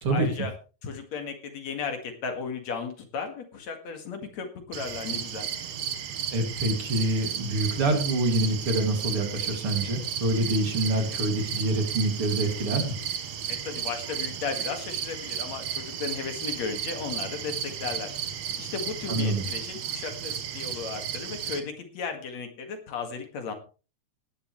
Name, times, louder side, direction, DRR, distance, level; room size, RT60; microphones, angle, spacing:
voice 1, 0.1-0.5 0.8-5.5 13.5-18.2 18.6-23.5, left 5 dB, 65° left, 5 dB, 3.2 m, -35 dB
sound 1, 4.7-21.6, right 8 dB, 70° right, 2.5 m, -34 dB
voice 2, 6.3-13.0 19.1-19.5, right 2 dB, 50° right, 4 dB, 3.3 m, -26 dB
18.5 x 11.0 x 3.2 m, 0.33 s
omnidirectional pair, 3.3 m